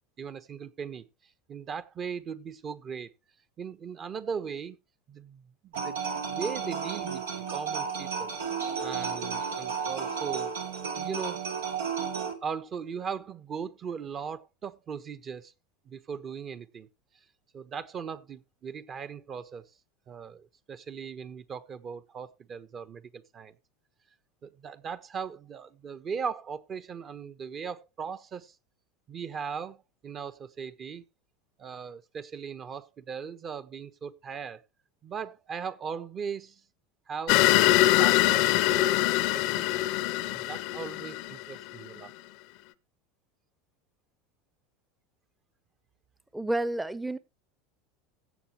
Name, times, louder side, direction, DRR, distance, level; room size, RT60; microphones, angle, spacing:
voice 1, 0.2-1.0 1.5-3.1 3.6-4.8 5.1-6.0 6.3-7.2 7.5-8.3 8.8-10.5 10.9-11.4 12.4-15.5 15.8-16.9 17.5-19.6 20.1-23.6 24.4-28.6 29.1-31.0 31.6-34.6 35.0-36.6 37.1-39.9 40.2-42.1, right 6 dB, 35° right, 1.2 m, -38 dB
sound 1, 5.7-12.3, right 6 dB, 90° right, 2.3 m, -33 dB
sound 2, 37.3-41.9, left 16 dB, 65° left, 0.7 m, -23 dB
voice 2, 46.3-47.2, right 1 dB, 10° right, 0.8 m, -30 dB
16.0 x 7.3 x 3.1 m
hypercardioid pair, 90°, 0 cm